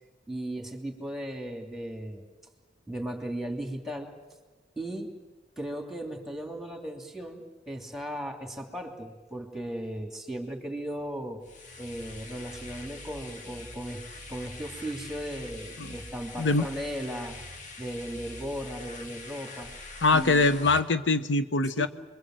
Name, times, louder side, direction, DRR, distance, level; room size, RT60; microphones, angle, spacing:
voice 1, 0.3-2.2 2.9-4.1 4.8-5.1 5.6-11.4 11.8-14.0 14.3-17.4 17.8-19.7 20.1-20.5 21.8-21.9, right 1 dB, ahead, 3 dB, 2.9 m, -36 dB
sound 1, 11.4-20.8, left 2 dB, 40° left, 2.6 m, -44 dB
voice 2, 20.0-21.9, left 3 dB, 80° left, 11 dB, 1.0 m, -23 dB
28.5 x 22.5 x 7.8 m, 1.2 s
head